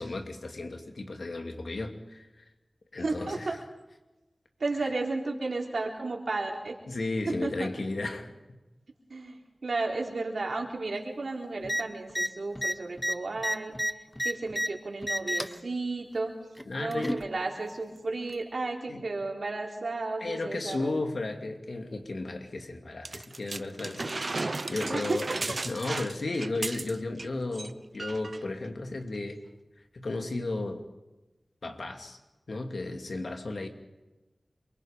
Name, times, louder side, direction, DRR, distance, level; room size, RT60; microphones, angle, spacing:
voice 1, 0.0-2.3 2.9-3.5 6.9-8.3 16.7-17.2 18.9-19.0 20.2-29.4 29.9-30.8 31.6-32.2 32.5-33.7, left 2 dB, 80° left, 4 dB, 2.5 m, -34 dB
voice 2, 3.0-3.6 4.6-6.7 7.3-7.5 9.1-13.7 14.2-16.4 16.8-21.0 24.9-25.6, right 3 dB, 80° right, 0 dB, 3.9 m, -33 dB
sound 1, 11.6-11.8 12.1-12.3 12.6-14.7 15.0-15.6 16.6-17.2 18.3-18.4, equal, 10° left, 1.2 m, -30 dB
sound 2, 23.0-27.3 27.5-27.7 28.0-28.4 29.1-29.2, right 2 dB, 55° right, 0.7 m, -35 dB
27.5 x 23.0 x 5.3 m, 1.1 s
wide cardioid pair, 60°, 0 cm